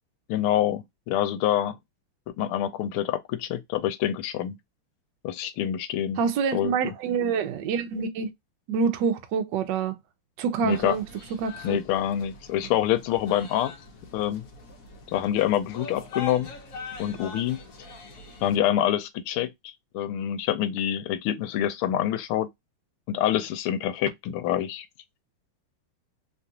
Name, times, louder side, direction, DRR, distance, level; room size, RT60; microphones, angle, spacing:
voice 1, 0.3-1.8 2.4-4.6 5.2-6.2 6.5-6.7 10.6-11.0 11.6-13.7 14.1-14.4 15.1-16.5 17.0-17.6 18.4-22.5 23.1-24.9, left 11 dB, 80° left, 1.5 m, -26 dB
voice 2, 6.2-8.3 8.7-10.0 10.4-11.0 11.4-11.8, right 6 dB, 70° right, 1.1 m, -26 dB
sound 1, 10.7-18.6, left 4 dB, 55° left, 1.0 m, -42 dB
3.5 x 2.4 x 2.7 m
omnidirectional pair, 2.4 m